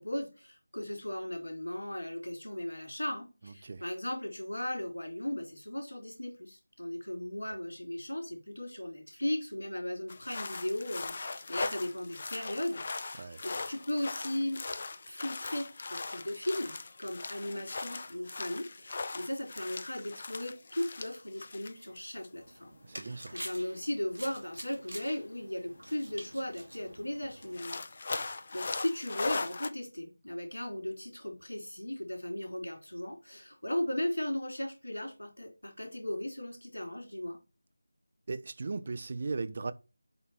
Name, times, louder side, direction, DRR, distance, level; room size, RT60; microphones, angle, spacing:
voice 1, 0.0-14.6 15.1-27.8 28.1-37.4, left 1 dB, 70° left, 3.4 m, -37 dB
voice 2, 3.4-3.8 13.1-13.4 22.8-23.4 28.1-28.3 38.3-39.7, right 3 dB, 35° right, 0.5 m, -38 dB
sound 1, 10.1-22.0 22.2-22.3 23.4-23.5 25.7-25.8 26.1-26.2 26.5-26.6 27.4-29.7, left 3 dB, 35° left, 0.5 m, -39 dB
sound 2, 22.4-27.6, equal, 80° right, 2.6 m, -47 dB
7.7 x 3.8 x 4.2 m
figure-of-eight pair, 165°, 0 cm